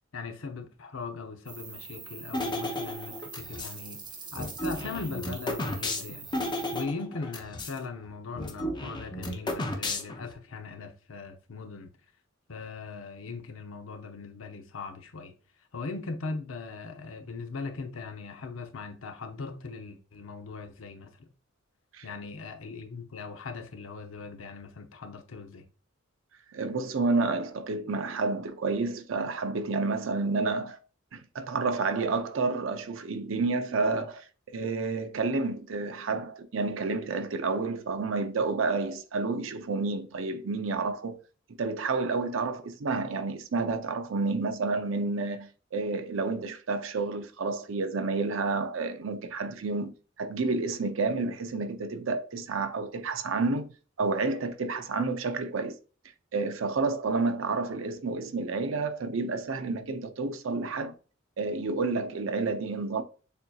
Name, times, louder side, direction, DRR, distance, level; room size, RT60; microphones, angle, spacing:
voice 1, 0.1-4.0 4.3-6.3 6.7-11.9 12.5-15.3 15.7-21.3 22.0-25.6, left 4 dB, 80° left, 0.7 m, -39 dB
sound 1, 1.5-6.8, right 5 dB, 20° right, 0.7 m, -44 dB
sound 2, 2.3-3.8 4.3-7.8 8.0-8.1 8.3-10.3, left 1 dB, 25° left, 0.7 m, -33 dB
voice 2, 26.5-30.8 31.1-41.2 41.6-49.9 50.2-53.7 54.0-55.8 56.3-60.9 61.4-63.0, right 3 dB, 70° right, 0.5 m, -30 dB
6.7 x 2.7 x 2.3 m
head